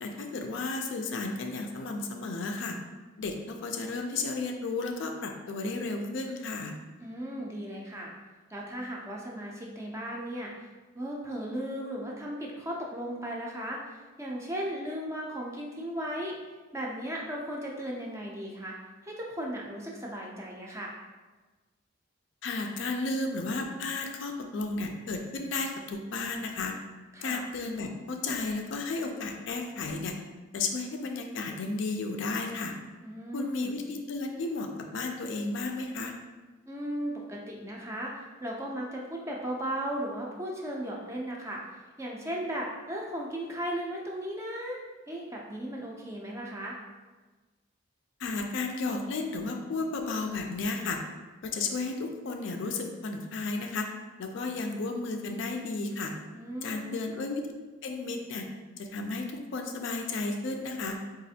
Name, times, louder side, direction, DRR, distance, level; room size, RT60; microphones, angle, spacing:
voice 1, 0.0-2.8 3.2-6.7 22.4-26.8 27.2-30.1 30.5-32.7 33.3-36.1 48.2-51.0 51.4-53.9 54.2-56.1 56.6-57.4 57.8-58.5 58.8-61.0, left 3 dB, 60° left, 3 dB, 0.4 m, -33 dB
voice 2, 7.0-8.1 8.5-10.7 10.9-16.4 16.7-18.8 19.0-20.9 27.1-27.4 33.0-33.7 36.7-41.6 42.0-44.8 45.1-46.8 56.3-57.0, right 1 dB, 15° right, -2 dB, 0.4 m, -36 dB
4.0 x 2.4 x 2.7 m, 1.3 s
head